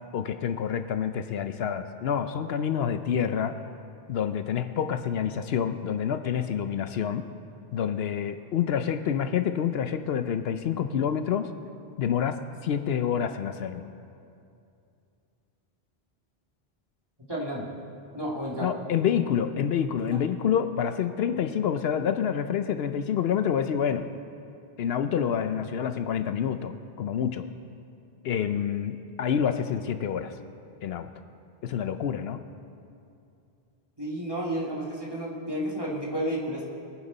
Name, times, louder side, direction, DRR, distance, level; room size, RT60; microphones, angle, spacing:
voice 1, 0.1-3.6 4.1-7.2 7.7-11.5 12.0-13.8 18.6-24.1 24.8-27.5 28.2-30.3 30.8-31.1 31.6-32.4, left 8 dB, 75° left, 9 dB, 0.8 m, -27 dB
voice 2, 17.3-17.7 18.1-18.7 20.0-20.2 34.0-36.7, right 1 dB, 25° right, -5 dB, 2.4 m, -31 dB
23.0 x 9.4 x 4.0 m, 2.5 s
omnidirectional pair, 1.1 m